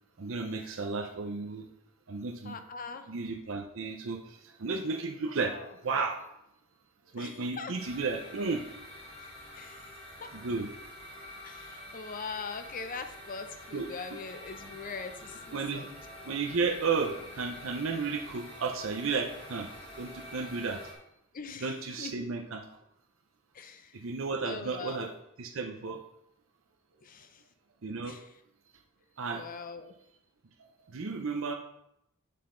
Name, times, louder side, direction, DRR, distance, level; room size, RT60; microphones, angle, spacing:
voice 1, 0.2-1.7 2.1-2.6 3.1-6.2 7.1-8.7 10.3-10.7 13.7-13.9 15.5-19.7 20.0-20.8 21.6-22.7 23.9-25.1 25.4-26.0 27.8-28.2 29.2-29.5 30.9-31.5, right 4 dB, 70° right, 3 dB, 0.6 m, -33 dB
voice 2, 2.4-3.1 5.5-5.7 7.2-7.7 9.2-9.9 10.2-10.3 11.4-15.9 21.3-22.1 23.5-23.9 24.4-25.1 27.0-27.4 28.0-28.2 29.3-29.9, left 4 dB, 40° left, 8 dB, 0.6 m, -42 dB
sound 1, 7.8-20.9, left 1 dB, 25° left, 1.6 m, -47 dB
6.7 x 5.6 x 3.8 m, 0.80 s
head